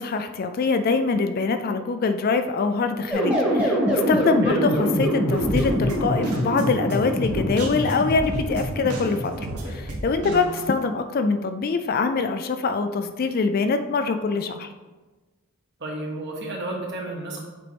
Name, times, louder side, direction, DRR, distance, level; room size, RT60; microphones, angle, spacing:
voice 1, 0.0-9.3 9.7-14.7, left 4 dB, 40° left, 8 dB, 0.3 m, -24 dB
sound 1, 3.1-10.0, equal, 5° right, 1.2 m, -25 dB
sound 2, 5.3-10.7, right 1 dB, 85° right, 1.1 m, -33 dB
voice 2, 15.8-17.4, right 1 dB, 50° right, -1 dB, 1.3 m, -32 dB
7.6 x 3.9 x 3.5 m, 1.2 s
head